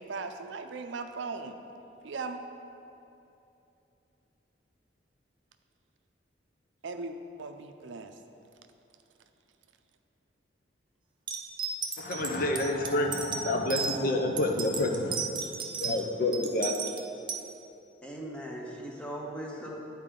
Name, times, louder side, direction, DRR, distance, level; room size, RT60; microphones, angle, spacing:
voice 1, 0.0-1.6 2.0-2.4 6.8-8.1, right 3 dB, 80° right, 7 dB, 0.5 m, -38 dB
sound 1, 11.3-14.0 14.4-16.0 16.3-17.4, right 6 dB, 25° right, 0.5 m, -34 dB
voice 2, 12.0-15.3 15.8-16.7, left 1 dB, 50° left, 3 dB, 0.6 m, -28 dB
voice 3, 18.0-19.7, equal, 5° left, -2 dB, 0.9 m, -39 dB
10.5 x 4.4 x 3.7 m, 2.8 s
head